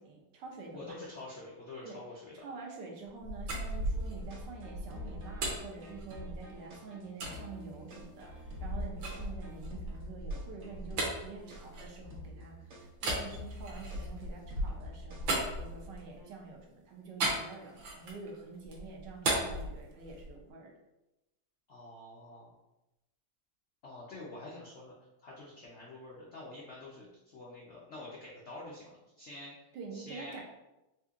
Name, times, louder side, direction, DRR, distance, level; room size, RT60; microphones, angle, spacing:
voice 1, 0.0-1.0 1.8-2.0 2.3-8.3 8.6-20.7 29.7-30.4, right 4 dB, 70° right, 0 dB, 1.3 m, -47 dB
voice 2, 0.7-2.4 21.7-22.5 23.8-24.9 25.2-29.5 29.9-30.4, left 2 dB, 75° left, -5 dB, 0.6 m, -47 dB
sound 1, 3.1-6.6 7.2-7.4 8.0-12.4 13.0-16.2 17.2-18.3 18.6-20.4, right 1 dB, 90° right, 1.6 m, -36 dB
sound 2, 3.8-16.3, left 2 dB, 55° right, 0.8 m, -49 dB
4.2 x 2.7 x 2.4 m, 0.94 s
omnidirectional pair, 2.0 m